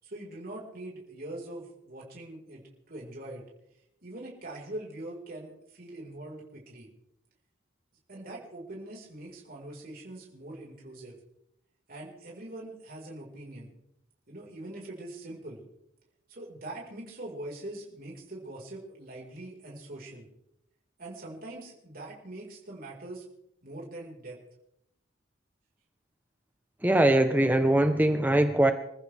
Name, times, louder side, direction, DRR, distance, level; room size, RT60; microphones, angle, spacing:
voice 1, 0.0-3.4 4.0-6.9 8.1-11.1 11.9-13.7 14.3-15.6 16.3-20.3 21.0-23.2 23.6-24.4, right 1 dB, 45° right, 4.7 m, -43 dB
voice 2, 26.8-28.7, right 1 dB, 10° right, 0.9 m, -22 dB
27.5 x 15.0 x 3.5 m
head